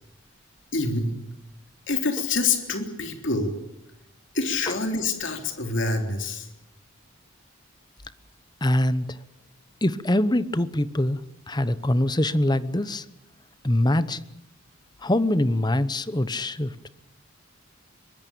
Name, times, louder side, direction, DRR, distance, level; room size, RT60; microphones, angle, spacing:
voice 1, 0.7-1.1 1.9-3.5 4.3-6.5, left 3 dB, 60° left, 4 dB, 3.6 m, -26 dB
voice 2, 8.6-9.0 9.8-11.2 11.5-13.0 13.6-14.3 15.0-16.9, left 1 dB, 20° left, 14 dB, 1.0 m, -23 dB
23.5 x 20.5 x 8.6 m, 0.89 s
head